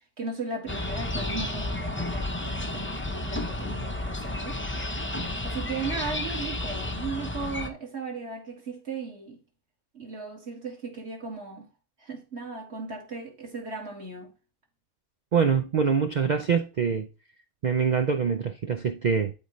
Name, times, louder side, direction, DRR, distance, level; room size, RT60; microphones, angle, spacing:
voice 1, 0.2-4.6 5.4-9.4 9.9-11.7 12.0-14.3, right 4 dB, 50° right, 2.3 m, -36 dB
sound 1, 0.7-7.7, left 1 dB, 15° left, 0.5 m, -32 dB
voice 2, 15.3-17.1 17.6-19.3, right 6 dB, 85° right, 0.4 m, -24 dB
12.0 x 4.0 x 3.1 m
omnidirectional pair, 1.5 m